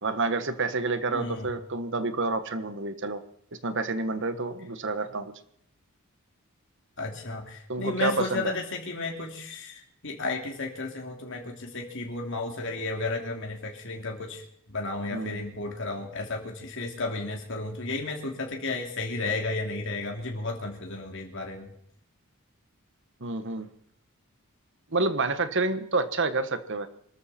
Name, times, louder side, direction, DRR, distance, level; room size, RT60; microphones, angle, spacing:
voice 1, 0.0-3.2 3.6-5.3 7.7-8.6 15.1-15.4 23.2-23.7 24.9-26.9, right 3 dB, 55° right, 11 dB, 1.4 m, -28 dB
voice 2, 1.1-1.5 7.0-14.4 14.7-21.7, left 3 dB, 55° left, 1 dB, 3.0 m, -33 dB
24.0 x 13.5 x 4.3 m, 0.70 s
head